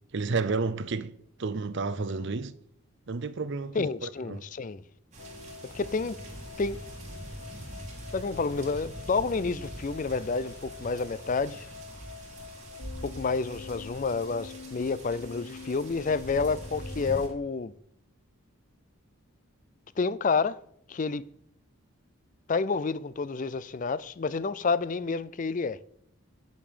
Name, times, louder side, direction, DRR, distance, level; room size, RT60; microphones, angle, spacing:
voice 1, 0.1-1.1 1.4-2.5 3.1-4.4, right 4 dB, 55° right, 0.6 m, -31 dB
voice 2, 3.7-4.8 5.7-6.2 6.6-6.8 8.1-11.7 13.0-17.7 20.0-20.6 20.9-21.2 22.5-25.8, left 4 dB, 35° left, 0.4 m, -29 dB
sound 1, 5.1-17.3, right 1 dB, 35° right, 2.8 m, -43 dB
sound 2, 5.2-17.4, left 5 dB, 75° left, 0.7 m, -46 dB
10.5 x 5.3 x 6.8 m
head